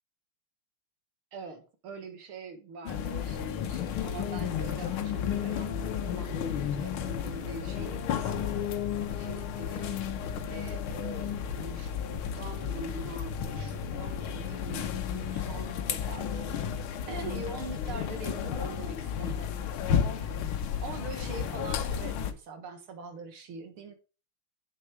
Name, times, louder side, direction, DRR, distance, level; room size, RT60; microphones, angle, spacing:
voice 1, 1.3-8.6 9.1-9.9 10.5-16.6 17.1-19.6 19.8-23.9, right 4 dB, 85° right, 2.3 m, -43 dB
sound 1, 2.8-22.3, left 8 dB, 85° left, 1.7 m, -33 dB
sound 2, 3.4-21.5, left 3 dB, 15° left, 2.3 m, -47 dB
sound 3, 7.0-18.6, left 4 dB, 45° left, 2.2 m, -56 dB
7.7 x 6.7 x 4.7 m
omnidirectional pair, 2.3 m